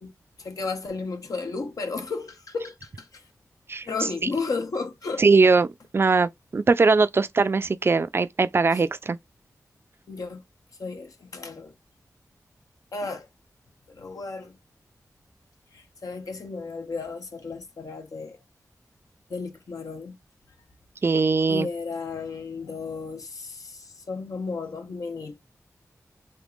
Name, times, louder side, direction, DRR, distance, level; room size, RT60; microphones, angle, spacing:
voice 1, 0.4-3.3 3.8-5.2 8.7-8.8 10.1-10.4 10.8-11.7 12.9-13.3 13.9-14.6 15.7-18.4 19.3-20.2 21.5-25.4, left 4 dB, 70° left, 0.7 m, -33 dB
voice 2, 5.2-5.7 5.9-9.2 21.0-21.7, right 4 dB, 40° right, 0.4 m, -20 dB
3.6 x 2.8 x 2.4 m
wide cardioid pair, 85°, 6 cm